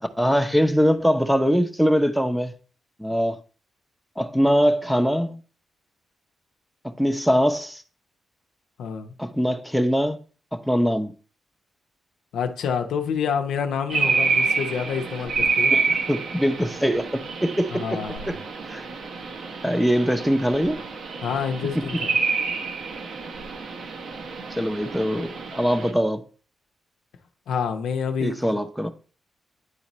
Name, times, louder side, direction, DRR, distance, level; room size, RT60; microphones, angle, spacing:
voice 1, 0.0-2.5 3.0-3.4 4.2-5.4 7.0-7.8 9.2-10.2 10.5-11.1 15.7-18.0 18.3-18.4 18.7-18.9 19.6-20.8 21.7-22.0 24.6-26.2 28.2-28.9, equal, 5° right, 0.6 m, -22 dB
voice 2, 8.8-9.1 12.3-15.7 17.7-18.3 21.2-22.1 27.5-28.6, left 7 dB, 90° left, 0.7 m, -28 dB
sound 1, 13.9-25.9, right 4 dB, 70° right, 0.8 m, -28 dB
9.6 x 4.1 x 3.0 m
cardioid pair, 85°, 0 cm